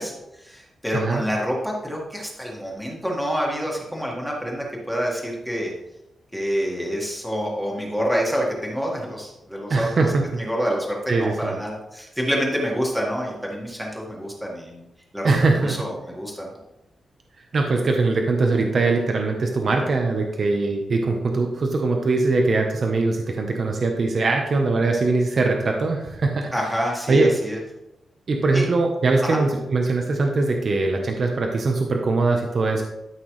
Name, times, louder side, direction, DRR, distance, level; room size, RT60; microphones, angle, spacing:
voice 1, 0.0-5.7 6.3-14.8 15.1-15.3 15.6-16.5 26.5-27.6 28.5-28.6 29.2-29.4, equal, ahead, -3 dB, 1.7 m, -27 dB
voice 2, 9.7-10.3 11.1-11.5 15.2-15.8 17.5-26.5 27.1-27.3 28.3-32.8, right 3 dB, 45° right, 2 dB, 0.9 m, -21 dB
12.5 x 6.0 x 3.2 m, 0.92 s
wide cardioid pair, 165°, 0 cm